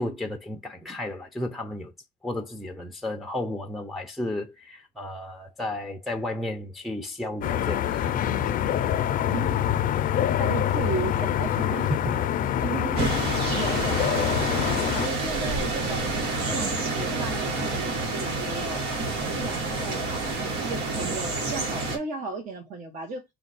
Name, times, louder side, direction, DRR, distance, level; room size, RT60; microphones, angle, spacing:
voice 1, 0.0-1.9 2.2-8.1 11.9-12.0, left 1 dB, ahead, 0.6 m, -33 dB
sound 1, 7.4-15.1, left 10 dB, 55° left, 0.5 m, -25 dB
voice 2, 10.4-11.9 12.6-13.1 13.5-16.1 16.5-18.9 19.3-23.2, right 4 dB, 50° right, 1.1 m, -35 dB
sound 2, 12.9-22.0, right 2 dB, 75° right, 1.3 m, -28 dB
4.3 x 2.3 x 4.0 m
cardioid pair, 110°, 17 cm